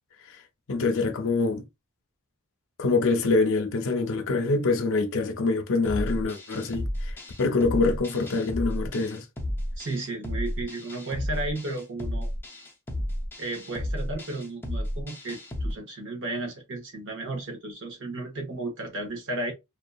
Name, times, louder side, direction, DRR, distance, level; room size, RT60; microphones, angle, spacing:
voice 1, 0.7-1.6 2.8-9.2, left 3 dB, 60° left, 0.5 m, -25 dB
sound 1, 5.8-15.7, left 1 dB, 10° left, 0.5 m, -32 dB
voice 2, 9.8-12.3 13.4-19.5, right 2 dB, 55° right, 0.9 m, -34 dB
2.6 x 2.2 x 2.2 m
head